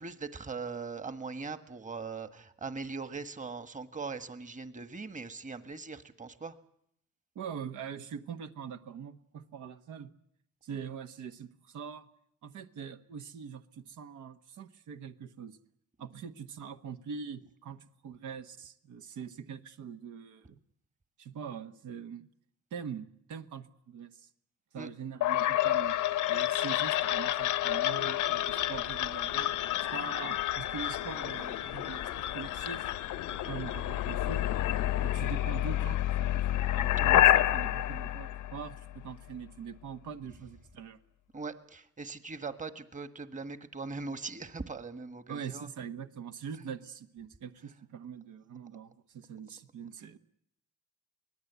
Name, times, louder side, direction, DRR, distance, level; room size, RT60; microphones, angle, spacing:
voice 1, 0.0-6.5 24.7-24.9 37.0-37.1 41.3-45.7, right 4 dB, 25° right, 9 dB, 1.6 m, -40 dB
voice 2, 7.3-10.1 10.6-12.1 12.4-15.6 16.0-20.6 21.2-22.3 22.7-24.3 24.7-26.0 26.3-29.5 29.9-32.9 33.4-34.4 35.0-41.0 45.3-50.2, right 7 dB, 75° right, 7 dB, 1.3 m, -43 dB
sound 1, 25.2-39.1, left 13 dB, 85° left, 1.0 m, -29 dB
24.5 x 18.5 x 8.2 m, 0.72 s
cardioid pair, 90°, 30 cm